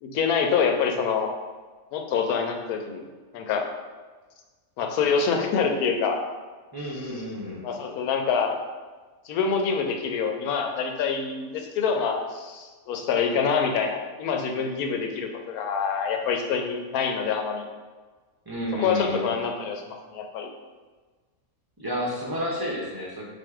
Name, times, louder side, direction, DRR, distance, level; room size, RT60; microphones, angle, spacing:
voice 1, 0.0-1.3 1.9-3.0 3.3-3.7 4.8-6.2 7.6-8.6 9.2-17.6 18.7-20.5, left 6 dB, 85° left, 4 dB, 1.1 m, -26 dB
voice 2, 6.7-7.7 18.5-19.4 21.8-23.2, equal, 35° right, -3 dB, 0.3 m, -31 dB
3.9 x 2.6 x 4.6 m, 1.4 s
omnidirectional pair, 1.5 m